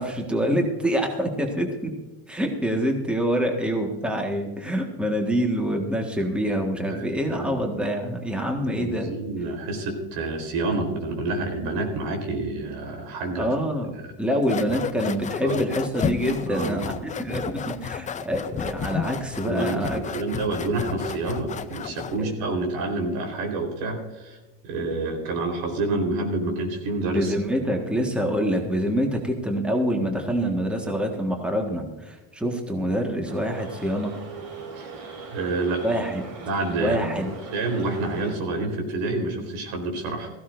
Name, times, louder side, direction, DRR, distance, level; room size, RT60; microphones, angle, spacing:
voice 1, 0.0-1.9 2.3-9.1 13.4-20.0 27.1-34.1 35.8-36.2 36.8-37.3, equal, 5° right, 2 dB, 1.6 m, -26 dB
voice 2, 6.8-7.8 8.5-13.5 14.9-15.1 15.4-15.6 16.5-16.9 19.4-24.4 24.6-27.3 34.7-35.1 35.3-35.9 36.4-37.2 37.5-40.3, right 2 dB, 85° right, 3 dB, 4.1 m, -28 dB
sound 1, 14.4-22.2, left 7 dB, 20° left, 0.4 m, -32 dB
sound 2, 33.2-38.3, right 4 dB, 70° right, 4.7 m, -40 dB
17.0 x 15.0 x 2.6 m, 1.1 s
cardioid pair, 145°, 41 cm